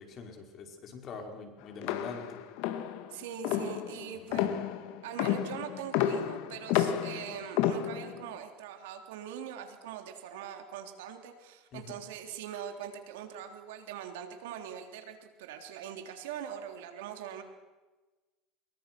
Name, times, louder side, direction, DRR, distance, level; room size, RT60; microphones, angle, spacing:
voice 1, 0.0-2.4 4.3-4.6 11.7-11.8, left 4 dB, 45° left, 4 dB, 5.0 m, -44 dB
sound 1, 1.8-8.3, left 11 dB, 70° left, 1.9 m, -31 dB
voice 2, 3.1-4.5 5.0-17.4, right 9 dB, 85° right, 6 dB, 3.5 m, -42 dB
25.5 x 22.5 x 6.2 m, 1.2 s
supercardioid pair, 105°, 0 cm